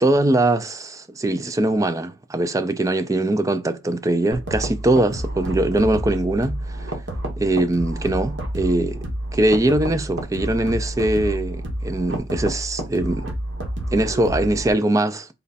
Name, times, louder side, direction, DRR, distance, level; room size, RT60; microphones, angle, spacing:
voice 1, 0.0-6.9 7.4-9.0 9.3-13.3 13.9-15.3, right 1 dB, 15° right, 0.3 m, -21 dB
sound 1, 4.3-14.7, right 1 dB, 80° right, 1.2 m, -29 dB
4.0 x 2.2 x 4.0 m
head